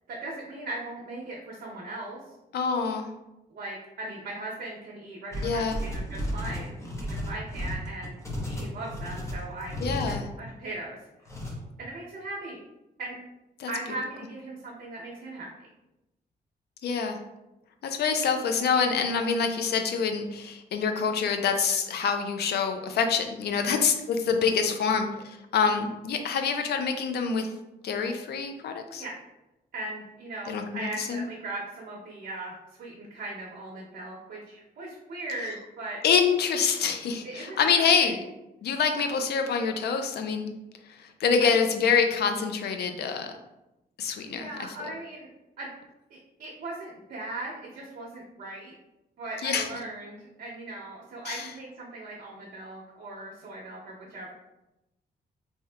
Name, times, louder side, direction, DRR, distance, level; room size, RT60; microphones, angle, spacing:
voice 1, 0.1-2.2 3.5-8.1 8.4-11.0 11.8-12.6 13.0-13.1 13.7-15.7 23.7-23.8 29.0-29.1 29.7-36.0 37.2-38.2 41.4-41.6 44.3-45.3 45.6-45.7 46.1-48.7 49.2-54.3, right 2 dB, 65° right, -4 dB, 0.7 m, -39 dB
voice 2, 2.5-3.1 5.4-5.8 9.8-10.2 13.6-13.7 16.8-17.2 17.8-27.5 27.8-29.0 30.5-31.2 36.0-38.2 38.6-40.5 40.9-43.3 44.0-44.5 49.4-49.7 51.2-51.5, left 6 dB, 80° left, 6 dB, 0.4 m, -26 dB
sound 1, 5.3-10.2 11.2-11.5, equal, 15° left, 0.7 m, -33 dB
3.4 x 2.7 x 2.2 m, 0.94 s
cardioid pair, 100°, 17 cm